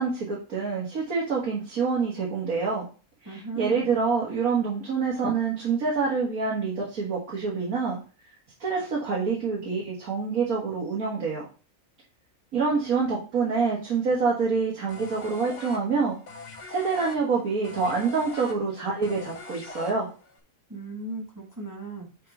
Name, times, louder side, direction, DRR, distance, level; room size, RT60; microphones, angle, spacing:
voice 1, 0.0-2.9 3.3-8.0 8.6-11.5 12.5-16.2 16.7-20.1, right 5 dB, 80° right, -4 dB, 2.1 m, -26 dB
voice 2, 3.2-3.9 20.7-22.3, right 3 dB, 15° right, 0 dB, 1.3 m, -37 dB
sound 1, 14.9-20.4, left 3 dB, 60° left, 1.3 m, -42 dB
5.4 x 4.6 x 5.4 m, 0.35 s
omnidirectional pair, 1.5 m